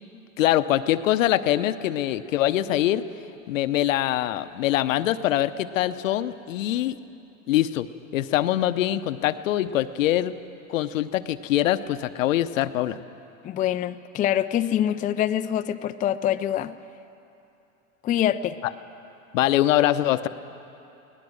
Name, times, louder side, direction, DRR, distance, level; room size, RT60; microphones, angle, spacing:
voice 1, 0.4-3.0 3.5-7.0 7.5-10.4 10.7-13.0 19.3-20.3, left 13 dB, 70° left, 13 dB, 0.8 m, -23 dB
voice 2, 13.4-16.7 18.0-18.6, left 11 dB, 20° left, 9 dB, 0.4 m, -25 dB
23.0 x 18.5 x 6.4 m, 2.8 s
hypercardioid pair, 90°, 41 cm